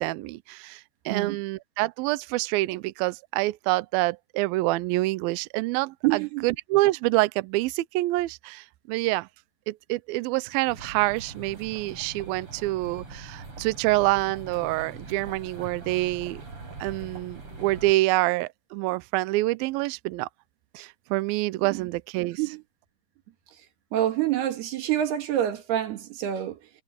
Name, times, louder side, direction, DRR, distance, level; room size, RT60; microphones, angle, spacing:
voice 1, 0.0-9.3 9.7-16.4 16.8-20.3 20.7-22.4, right 20 dB, 90° right, 2.1 m, -27 dB
voice 2, 6.0-6.5 21.7-21.8 22.4-22.6 23.9-26.7, right 12 dB, 70° right, 3.8 m, -27 dB
sound 1, 10.7-17.9, right 3 dB, 30° right, 5.9 m, -42 dB
omnidirectional pair, 5.0 m